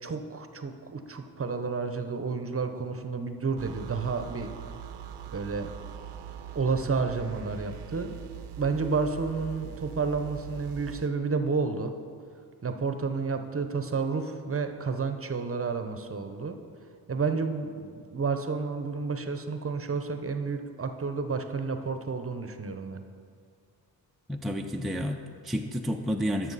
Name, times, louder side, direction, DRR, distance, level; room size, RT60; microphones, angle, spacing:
voice 1, 0.0-4.5 5.3-5.7 6.5-8.2 8.6-11.9 12.6-16.6 17.1-23.0, right 4 dB, 30° right, 7 dB, 0.8 m, -30 dB
sound 1, 3.6-11.1, right 9 dB, 75° right, 0.7 m, -42 dB
voice 2, 24.3-26.5, equal, ahead, 3 dB, 0.5 m, -30 dB
12.0 x 6.0 x 4.1 m, 2.2 s
supercardioid pair, 55°, 42 cm